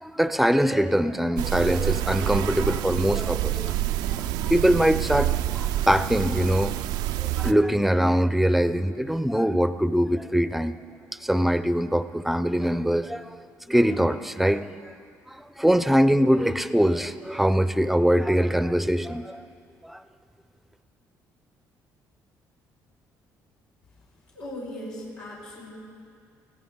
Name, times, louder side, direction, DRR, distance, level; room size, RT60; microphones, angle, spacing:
voice 1, 0.0-3.8 4.1-6.7 7.2-10.7 11.2-13.4 13.7-14.9 15.6-19.5 19.8-20.0, equal, 5° right, 12 dB, 0.6 m, -23 dB
sound 1, 1.4-7.5, right 13 dB, 85° right, 0.5 m, -27 dB
voice 2, 24.3-25.7, left 1 dB, 85° left, -6 dB, 4.7 m, -38 dB
21.5 x 16.0 x 3.9 m, 2.3 s
supercardioid pair, 80°, 7 cm